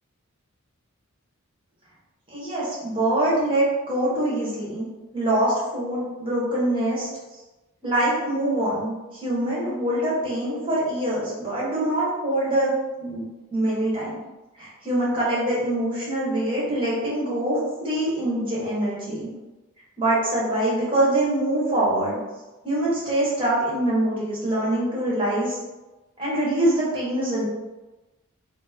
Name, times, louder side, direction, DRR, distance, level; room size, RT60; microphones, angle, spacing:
voice 1, 2.3-4.9 5.1-7.1 7.8-14.3 14.6-19.3 20.0-22.2 22.6-25.6 26.2-27.4, right 1 dB, 25° right, -7 dB, 1.1 m, -24 dB
2.9 x 2.0 x 3.5 m, 1.1 s
head